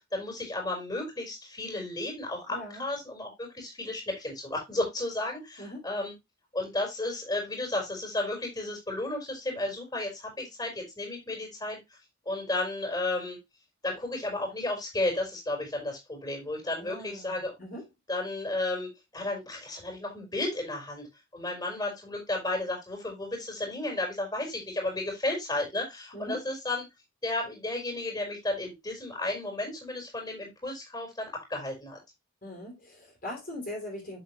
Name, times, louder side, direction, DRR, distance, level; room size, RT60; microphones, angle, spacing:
voice 1, 0.1-6.1 6.5-11.8 12.2-13.4 13.8-17.5 18.1-21.1 21.3-26.8 27.2-32.0, left 2 dB, 20° left, 1 dB, 4.4 m, -33 dB
voice 2, 2.5-2.8 5.6-5.9 16.7-17.9 26.1-26.4 32.4-34.2, left 1 dB, 45° left, -1 dB, 3.8 m, -41 dB
7.6 x 7.3 x 3.1 m, 0.20 s
head